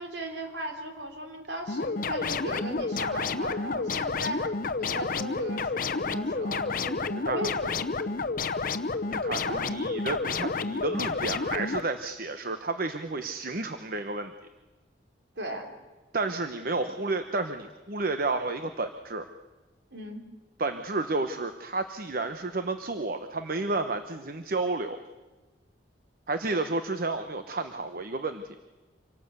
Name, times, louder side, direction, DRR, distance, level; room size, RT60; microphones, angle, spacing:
voice 1, 0.0-7.7 9.3-9.7 15.4-15.7 19.9-20.2, right 1 dB, 70° right, 3 dB, 3.7 m, -37 dB
sound 1, 1.7-11.8, left 4 dB, 50° left, 0.8 m, -30 dB
voice 2, 9.1-14.3 16.1-19.3 20.6-25.0 26.3-28.6, right 3 dB, 50° right, 8 dB, 1.0 m, -31 dB
26.0 x 18.0 x 8.2 m, 1.2 s
head